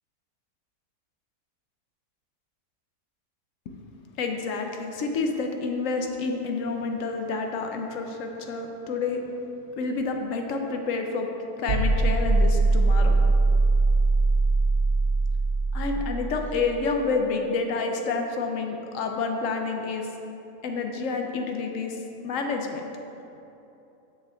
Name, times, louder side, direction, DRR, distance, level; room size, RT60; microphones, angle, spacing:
voice 1, 4.2-9.2 9.8-11.3 11.6-13.2 15.7-20.1 20.6-22.8, left 4 dB, 65° left, 3 dB, 0.9 m, -29 dB
sound 1, 11.7-16.7, right 3 dB, 55° right, 0.9 m, -21 dB
6.6 x 6.0 x 3.4 m, 2.9 s
omnidirectional pair, 1.6 m